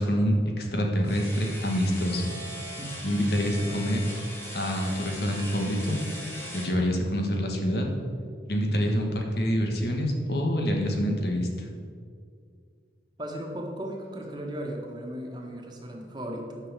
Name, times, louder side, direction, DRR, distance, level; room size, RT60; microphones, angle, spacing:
voice 1, 0.0-2.3 3.0-4.0 4.5-6.0 6.5-7.9 8.5-11.5, equal, 60° left, 1 dB, 1.7 m, -26 dB
sound 1, 1.0-6.7, equal, 15° left, 2.3 m, -40 dB
voice 2, 13.2-16.6, right 1 dB, 25° right, 0 dB, 1.6 m, -36 dB
11.0 x 6.1 x 7.5 m, 2.2 s
head